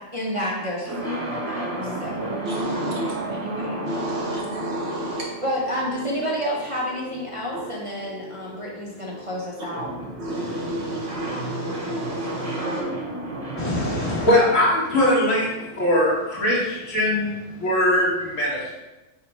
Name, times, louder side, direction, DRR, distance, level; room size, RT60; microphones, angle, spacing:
voice 1, 0.0-2.4 3.3-3.8 5.4-9.9, equal, 35° right, -6 dB, 0.5 m, -30 dB
sound 1, 0.8-16.6, right 1 dB, 15° right, 0.9 m, -34 dB
voice 2, 2.4-3.1 3.9-5.2 7.5-7.6 10.2-12.8, right 1 dB, 60° right, -4 dB, 1.3 m, -30 dB
voice 3, 13.6-15.5 15.8-18.7, left 1 dB, 85° left, -7 dB, 1.9 m, -21 dB
4.8 x 2.2 x 4.3 m, 1.1 s
omnidirectional pair, 1.3 m